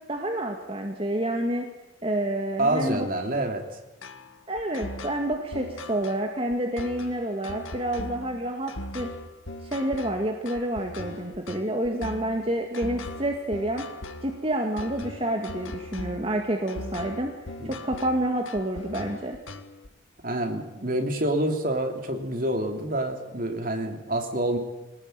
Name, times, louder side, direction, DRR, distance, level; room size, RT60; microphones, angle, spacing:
voice 1, 0.1-1.7 2.0-3.1 3.4-3.5 4.5-9.1 9.6-13.8 14.2-17.3 17.6-19.4, right 1 dB, 30° right, 2 dB, 2.0 m, -28 dB
voice 2, 2.6-3.6 17.6-17.8 20.2-24.6, right 1 dB, 45° right, 4 dB, 3.1 m, -27 dB
sound 1, 4.0-19.9, left 1 dB, 80° left, 1.9 m, -39 dB
23.0 x 18.5 x 9.1 m, 1.0 s
head